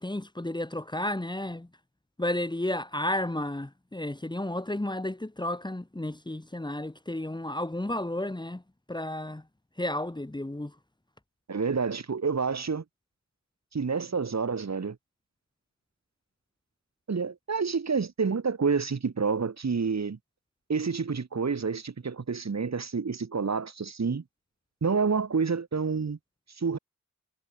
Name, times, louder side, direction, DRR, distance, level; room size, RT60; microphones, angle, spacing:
voice 1, 0.0-1.7 2.2-8.6 8.9-9.4 9.8-10.7, left 1 dB, 15° left, 2.5 m, -32 dB
voice 2, 11.5-12.8 13.7-15.0 17.1-20.2 20.7-24.2 24.8-26.2 26.6-26.8, right 5 dB, 55° right, 7.4 m, -28 dB
cardioid pair, 50°, 33 cm